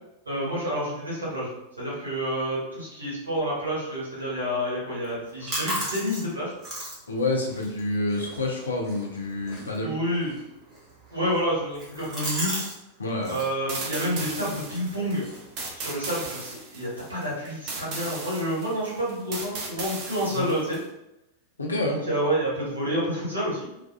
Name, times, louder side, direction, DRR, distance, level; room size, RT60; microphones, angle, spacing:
voice 1, 0.2-1.5 1.8-6.5 9.5-10.4 11.1-12.6 13.3-15.3 15.8-20.8 21.9-23.7, equal, 80° right, -6 dB, 1.1 m, -29 dB
sound 1, 5.0-12.8 13.0-13.5 13.9-16.3, right 1 dB, 25° right, 1.0 m, -37 dB
voice 2, 7.1-9.9 13.0-13.4 20.3-20.6 21.6-22.0, left 2 dB, 75° left, 0 dB, 0.5 m, -28 dB
sound 2, 13.7-20.8, right 3 dB, 40° right, 0.5 m, -36 dB
2.5 x 2.3 x 2.2 m, 0.89 s
figure-of-eight pair, 90°, 0 cm